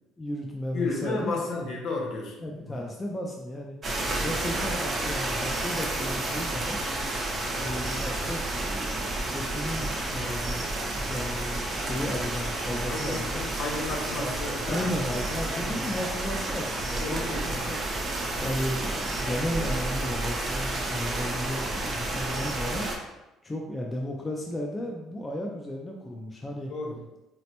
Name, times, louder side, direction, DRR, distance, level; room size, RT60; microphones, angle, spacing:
voice 1, 0.2-1.7 2.4-3.8 4.2-6.8 7.6-13.4 14.2-14.3 14.7-17.8 18.4-22.9 23.4-26.7, left 1 dB, 15° left, 0 dB, 0.3 m, -34 dB
voice 2, 0.7-2.4 2.7-2.8 3.9-4.3 12.9-15.0 15.5-15.8 17.0-17.6 26.7-27.0, left 3 dB, 60° left, 0 dB, 0.8 m, -33 dB
sound 1, 3.8-23.0, right 2 dB, 25° right, 0.6 m, -30 dB
4.1 x 2.0 x 2.8 m, 0.97 s
cardioid pair, 140°, 0 cm